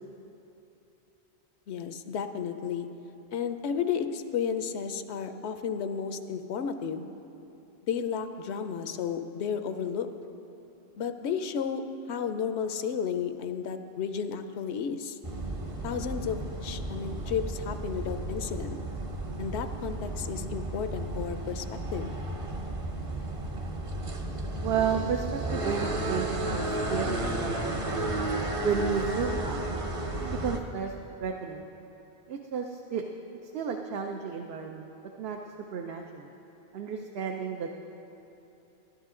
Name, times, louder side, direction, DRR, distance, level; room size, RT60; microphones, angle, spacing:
voice 1, 1.7-2.9 3.3-7.1 7.8-10.1 11.0-15.2 15.8-18.8 19.4-21.7 21.9-22.1, left 7 dB, 85° left, 9 dB, 0.9 m, -32 dB
sound 1, 15.2-30.6, right 1 dB, 35° right, 0.7 m, -33 dB
voice 2, 24.6-28.2 28.6-29.7 30.2-30.9 31.2-31.7 32.3-33.0 33.5-34.9 35.2-35.4 35.7-36.3 36.7-37.8, right 7 dB, 70° right, 3 dB, 0.8 m, -32 dB
12.5 x 11.5 x 3.7 m, 2.9 s
omnidirectional pair, 1.1 m